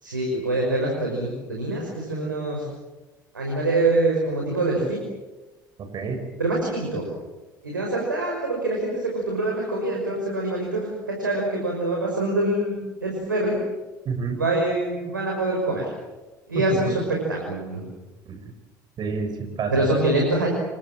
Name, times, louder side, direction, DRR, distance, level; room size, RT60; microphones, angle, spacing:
voice 1, 0.0-2.7 3.3-5.0 6.4-7.1 7.6-12.7 13.0-13.6 14.4-15.9 16.5-17.8 19.7-20.5, right 2 dB, 90° right, -1 dB, 5.6 m, -25 dB
voice 2, 14.1-14.4 16.5-17.0 18.3-18.4 19.0-19.9, right 4 dB, 45° right, 6 dB, 5.5 m, -28 dB
27.0 x 24.0 x 7.5 m, 1.1 s
figure-of-eight pair, 65°, 10 cm